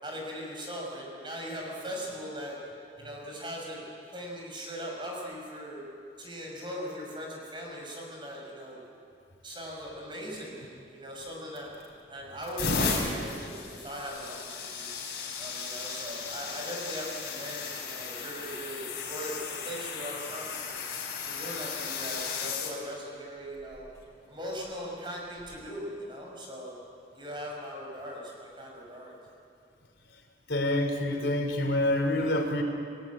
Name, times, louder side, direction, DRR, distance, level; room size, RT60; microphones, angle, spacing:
voice 1, 0.0-2.6 3.0-3.8 4.1-5.8 6.2-8.8 9.4-14.9 15.4-20.8 21.2-23.9 24.3-26.8 27.1-29.1, equal, 25° right, -1 dB, 6.3 m, -39 dB
sound 1, 11.6-11.9 12.4-22.7 23.6-23.9 25.4-25.5, left 4 dB, 60° left, 5.2 m, -35 dB
voice 2, 30.5-32.6, left 1 dB, 80° left, 4 dB, 3.4 m, -27 dB
29.5 x 18.0 x 8.6 m, 2.5 s
head